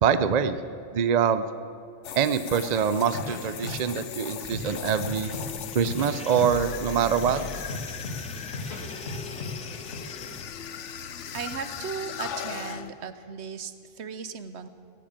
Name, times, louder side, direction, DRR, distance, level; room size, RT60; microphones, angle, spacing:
voice 1, 0.0-0.6 0.9-1.5 2.2-5.3 5.7-7.4, right 7 dB, 45° right, 12 dB, 0.6 m, -24 dB
sound 1, 2.0-12.9, left 8 dB, 85° left, 1.1 m, -38 dB
sound 2, 3.1-4.0 4.3-5.5 5.7-6.7 7.0-8.8 9.1-10.0, left 2 dB, 60° left, 2.3 m, -36 dB
sound 3, 4.4-10.4, equal, 5° left, 0.7 m, -43 dB
voice 2, 11.3-14.7, right 6 dB, 70° right, 12 dB, 1.1 m, -36 dB
16.5 x 8.6 x 8.7 m, 2.4 s
omnidirectional pair, 1.2 m